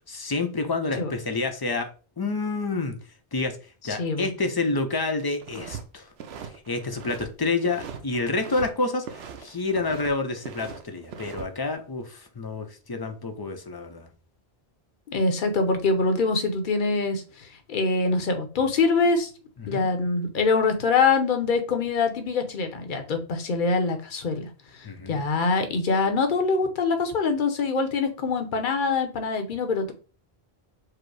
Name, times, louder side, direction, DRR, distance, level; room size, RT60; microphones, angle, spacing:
voice 1, 0.1-1.9 2.2-3.0 3.3-6.1 6.7-14.1 19.6-19.9 24.8-25.2, left 3 dB, 30° left, 6 dB, 0.5 m, -28 dB
sound 1, 5.4-5.8 6.1-7.3 7.6-8.7 8.9-10.1 10.4-11.5, right 7 dB, 80° right, 0.9 m, -40 dB
voice 2, 15.1-19.3 19.7-24.5 25.1-29.9, left 4 dB, 55° left, 6 dB, 0.9 m, -24 dB
4.9 x 2.0 x 4.6 m, 0.37 s
omnidirectional pair, 1.1 m